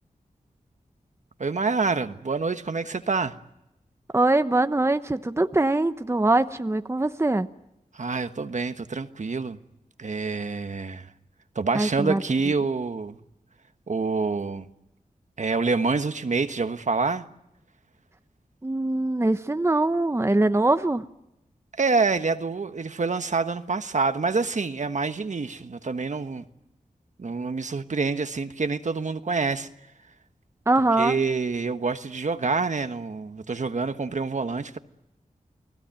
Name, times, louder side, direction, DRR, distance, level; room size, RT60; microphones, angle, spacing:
voice 1, 1.4-3.3 7.9-9.6 10.0-11.1 11.5-13.2 13.9-14.7 15.4-17.2 21.8-26.4 27.2-29.7 31.0-34.8, right 4 dB, 60° right, 1.3 m, -27 dB
voice 2, 4.1-7.5 11.7-12.2 18.6-21.1 30.7-31.2, right 2 dB, 20° right, 0.9 m, -22 dB
30.0 x 18.5 x 9.0 m
wide cardioid pair, 70°, 14 cm